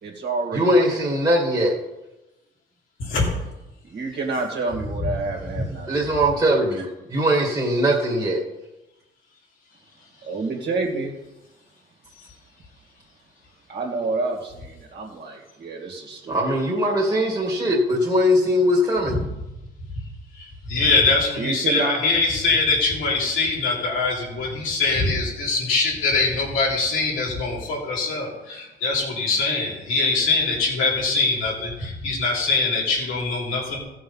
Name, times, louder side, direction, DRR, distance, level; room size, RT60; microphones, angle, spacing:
voice 1, 0.0-1.1 3.9-6.0 10.2-11.1 13.7-16.4 21.4-22.0, right 3 dB, 55° right, 0 dB, 2.3 m, -28 dB
voice 2, 0.5-1.7 5.9-8.4 16.3-19.1, equal, 20° right, -3 dB, 2.2 m, -20 dB
voice 3, 3.0-3.4 12.1-12.4 19.1-19.2 20.3-33.8, left 3 dB, 90° left, -3 dB, 3.6 m, -23 dB
15.0 x 6.3 x 5.6 m, 1.0 s
cardioid pair, 90°, 20 cm